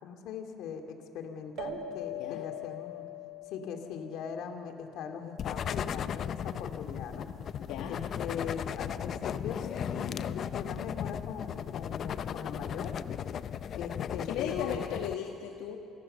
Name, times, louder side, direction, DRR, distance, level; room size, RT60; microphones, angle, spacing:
voice 1, 0.0-3.1 3.5-7.3 7.9-12.9 13.8-14.7, left 6 dB, 65° left, 5 dB, 2.5 m, -40 dB
sound 1, 1.6-4.6, left 4 dB, 65° right, 1.8 m, -41 dB
sound 2, 5.4-15.2, left 8 dB, 45° left, 0.6 m, -36 dB
voice 2, 7.7-8.0 13.7-15.8, left 9 dB, 80° left, 2 dB, 1.5 m, -37 dB
28.0 x 17.0 x 6.8 m, 2.6 s
cardioid pair, 130°, 0 cm